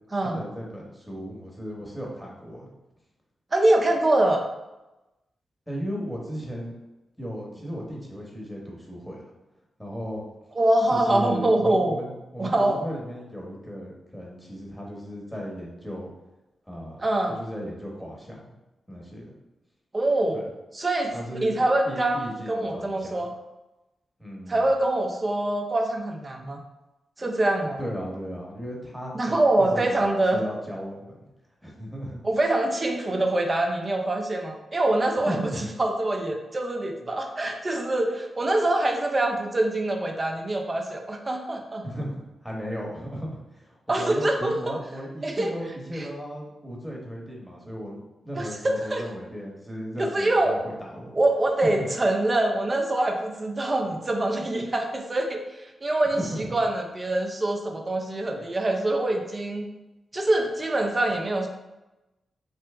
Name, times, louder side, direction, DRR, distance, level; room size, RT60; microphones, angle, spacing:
voice 1, 0.2-2.7 5.7-6.7 7.2-9.2 9.8-10.2 10.9-16.1 16.7-18.5 18.9-19.3 20.3-20.4 21.1-21.6 21.8-23.2 24.2-24.6 27.8-31.2 31.6-32.2 35.3-35.7 41.8-51.1 51.6-51.7 56.0-56.5, equal, ahead, -2 dB, 1.1 m, -36 dB
voice 2, 3.5-4.4 10.6-12.0 12.4-12.8 17.0-17.4 19.9-20.4 20.7-21.1 21.4-23.3 24.5-26.6 27.2-27.8 29.1-30.4 32.2-41.8 43.9-44.7 45.2-45.5 45.9-46.1 48.3-49.1 50.0-50.6 51.1-59.7 60.1-61.5, right 1 dB, 30° right, 2 dB, 0.6 m, -24 dB
3.3 x 2.9 x 3.3 m, 1.0 s
cardioid pair, 70°, 0 cm